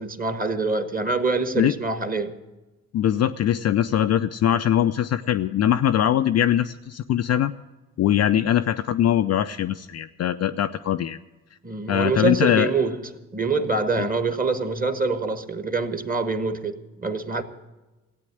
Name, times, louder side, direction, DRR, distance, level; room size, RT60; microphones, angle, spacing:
voice 1, 0.0-2.3 11.6-17.4, right 3 dB, 20° right, 1.3 m, -25 dB
voice 2, 2.9-7.5 8.0-11.2 11.9-12.7 14.0-14.1, left 10 dB, 35° left, 0.5 m, -22 dB
16.0 x 9.1 x 7.8 m
figure-of-eight pair, 40°, 44 cm